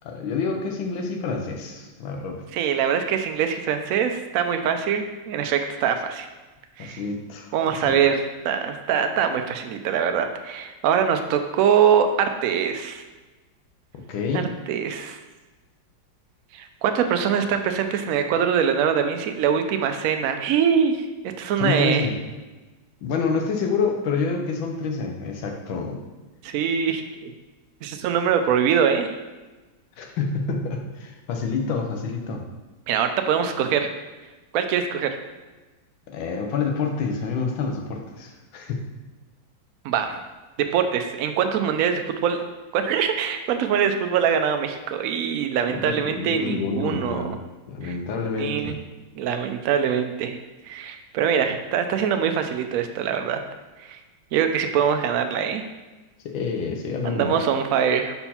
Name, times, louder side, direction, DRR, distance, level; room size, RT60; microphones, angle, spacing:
voice 1, 0.0-2.4 6.8-7.5 7.8-8.0 13.9-14.5 21.6-22.2 23.0-26.0 30.0-32.4 36.1-38.8 45.7-47.4 47.7-48.8 56.2-57.4, left 4 dB, 90° left, 2 dB, 1.6 m, -27 dB
voice 2, 2.5-6.3 6.8-7.0 7.5-13.0 14.3-15.2 16.5-20.9 21.2-22.1 26.4-27.3 27.8-29.1 32.9-33.9 34.5-35.1 39.8-40.2 40.7-42.4 42.7-47.4 47.8-47.9 48.4-48.7 49.1-50.4 50.6-53.4 53.8-54.0 54.3-55.6 57.0-58.1, right 7 dB, 90° right, 6 dB, 0.7 m, -23 dB
4.4 x 4.3 x 5.6 m, 1.2 s
omnidirectional pair, 2.1 m